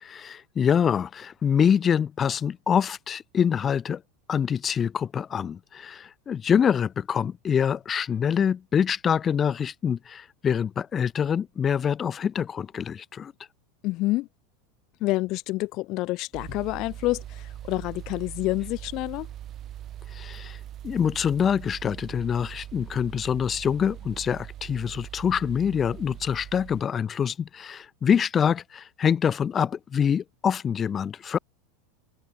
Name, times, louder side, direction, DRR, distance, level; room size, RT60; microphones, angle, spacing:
voice 1, 0.0-4.0 4.3-13.3 20.1-20.6 20.8-31.4, left 7 dB, 20° left, 2.3 m, -25 dB
voice 2, 13.8-14.3 15.0-19.3, left 20 dB, 40° left, 1.6 m, -28 dB
sound 1, 16.3-26.8, right 11 dB, 30° right, 1.6 m, -41 dB
open air
supercardioid pair, 150°, 0 cm